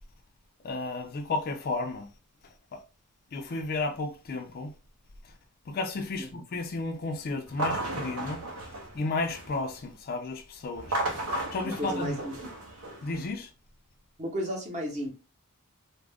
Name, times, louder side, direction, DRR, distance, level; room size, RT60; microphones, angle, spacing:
voice 1, 0.6-2.1 2.7-2.8 3.3-4.7 5.7-8.4 8.9-12.2 13.0-13.5, left 3 dB, 45° left, 0.4 m, -33 dB
sound 1, 7.5-9.7 10.7-13.3, right 2 dB, 80° right, 0.6 m, -34 dB
voice 2, 11.6-12.5 14.2-15.1, equal, 30° right, 0.8 m, -34 dB
2.4 x 2.0 x 3.4 m
head